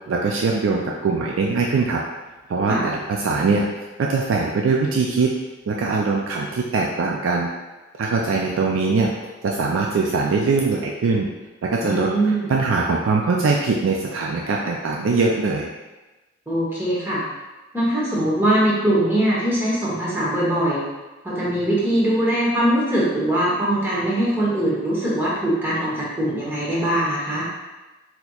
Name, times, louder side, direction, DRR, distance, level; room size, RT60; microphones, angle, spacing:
voice 1, 0.1-2.0 2.5-3.7 4.0-5.3 5.7-7.5 8.0-9.1 9.4-11.3 11.6-12.1 12.5-15.7, right 4 dB, 80° right, -1 dB, 0.3 m, -21 dB
voice 2, 11.8-12.5 16.5-17.2 17.7-20.8 21.2-27.5, right 1 dB, 10° right, -7 dB, 1.0 m, -21 dB
4.1 x 2.8 x 2.3 m, 1.1 s
head